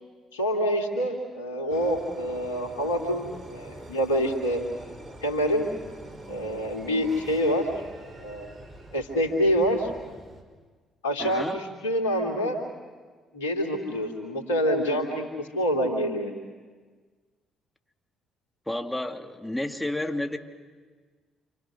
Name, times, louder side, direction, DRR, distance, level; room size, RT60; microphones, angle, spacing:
voice 1, 0.3-4.6 5.2-5.7 6.3-7.7 8.0-8.5 8.9-9.9 11.0-12.6 13.3-16.3, equal, 85° left, 3 dB, 2.8 m, -26 dB
sound 1, 1.7-10.4, right 1 dB, 30° right, 5.4 m, -45 dB
voice 2, 11.2-11.6 18.7-20.4, left 1 dB, 5° left, 4 dB, 2.7 m, -31 dB
28.0 x 27.5 x 6.4 m, 1.5 s
hypercardioid pair, 45°, 0 cm